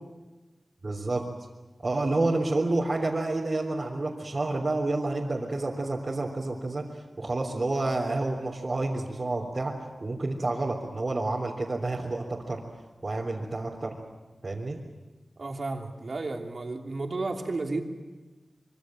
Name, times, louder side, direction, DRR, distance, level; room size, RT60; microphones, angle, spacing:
voice 1, 0.8-1.2 1.8-9.7 10.0-12.6 13.0-13.9 14.4-14.8, right 2 dB, 45° right, -4 dB, 3.5 m, -29 dB
voice 2, 15.4-17.8, right 3 dB, 65° right, 2 dB, 2.9 m, -32 dB
26.0 x 24.0 x 7.7 m, 1.2 s
wide cardioid pair, 80°, 0 cm